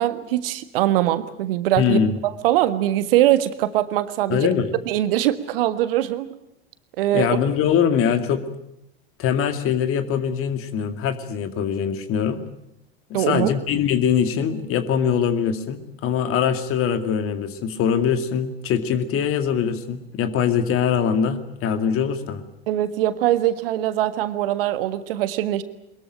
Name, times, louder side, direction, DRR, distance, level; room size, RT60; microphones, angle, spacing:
voice 1, 0.0-2.0 2.4-4.5 4.9-6.3 7.0-7.4 13.1-13.5 22.7-25.6, right 13 dB, 70° right, 11 dB, 1.7 m, -22 dB
voice 2, 1.8-2.1 4.3-4.7 7.1-8.4 9.2-12.4 13.1-22.4, left 7 dB, 45° left, 9 dB, 2.4 m, -22 dB
22.0 x 21.5 x 8.9 m, 0.81 s
figure-of-eight pair, 75°, 30 cm